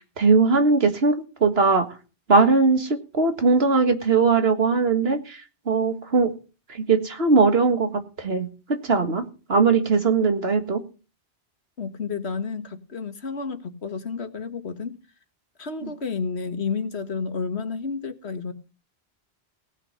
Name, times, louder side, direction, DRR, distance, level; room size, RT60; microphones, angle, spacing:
voice 1, 0.2-1.9 2.3-6.3 6.7-7.9 8.2-10.8, right 4 dB, 70° right, 8 dB, 2.0 m, -20 dB
voice 2, 11.8-15.0 15.6-18.5, left 5 dB, 85° left, 10 dB, 1.9 m, -31 dB
17.5 x 5.9 x 9.5 m, 0.35 s
omnidirectional pair, 1.1 m